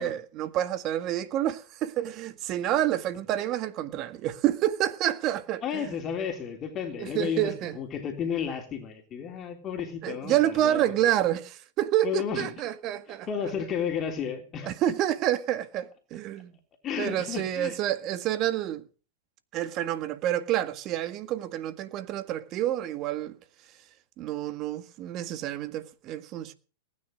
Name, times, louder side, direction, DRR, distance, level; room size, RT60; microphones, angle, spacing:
voice 1, 0.0-5.8 7.0-7.8 10.0-13.3 14.7-16.5 17.0-18.8 19.5-23.4 24.2-26.5, right 12 dB, 40° right, 1.7 m, -28 dB
voice 2, 5.6-10.9 12.0-12.5 13.1-14.7 16.8-17.8, left 7 dB, 30° left, 3.3 m, -32 dB
19.0 x 9.6 x 6.4 m
hypercardioid pair, 110°, 0 cm